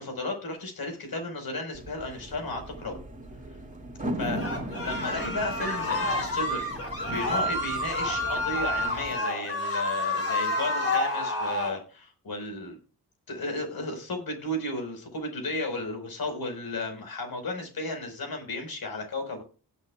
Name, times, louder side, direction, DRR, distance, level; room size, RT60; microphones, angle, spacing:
voice 1, 0.0-3.0 4.2-4.5 4.8-12.8 13.3-19.4, left 2 dB, 60° left, 5 dB, 4.9 m, -34 dB
sound 1, 1.7-9.2, right 1 dB, 20° right, 2.4 m, -38 dB
sound 2, 4.4-11.8, left 1 dB, 35° left, 5.2 m, -29 dB
19.0 x 8.3 x 2.4 m, 0.36 s
wide cardioid pair, 120°, 39 cm